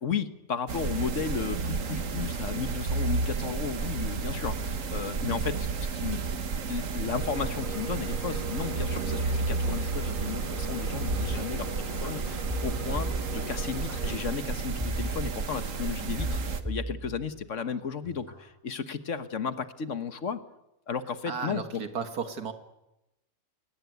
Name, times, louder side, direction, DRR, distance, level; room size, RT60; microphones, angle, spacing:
voice 1, 0.0-5.7 5.9-6.4 6.7-20.4 20.9-21.8, left 6 dB, 55° left, 12 dB, 1.5 m, -34 dB
sound 1, 0.7-16.6, right 4 dB, 60° right, 1.6 m, -32 dB
sound 2, 7.2-14.2, right 1 dB, 35° left, 6.4 m, -42 dB
sound 3, 11.1-12.1 12.5-13.9 14.8-15.8 16.2-17.6 18.0-18.4, right 1 dB, 10° right, 3.8 m, -36 dB
voice 2, 21.3-22.5, right 6 dB, 90° right, 9 dB, 2.2 m, -34 dB
23.0 x 18.5 x 9.4 m, 0.92 s
omnidirectional pair, 1.6 m